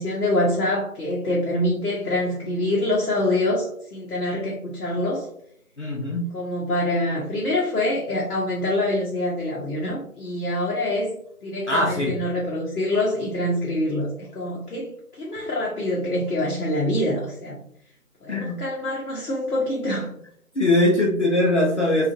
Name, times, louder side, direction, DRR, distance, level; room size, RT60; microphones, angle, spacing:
voice 1, 0.0-5.3 6.3-11.2 11.4-14.9 15.2-17.6 18.2-20.1, left 1 dB, 85° left, -4 dB, 1.0 m, -25 dB
voice 2, 5.8-6.3 11.7-12.2 18.3-18.6 20.5-22.1, left 1 dB, 50° left, -1 dB, 0.6 m, -21 dB
2.9 x 2.4 x 2.5 m, 0.67 s
figure-of-eight pair, 170°, 45 cm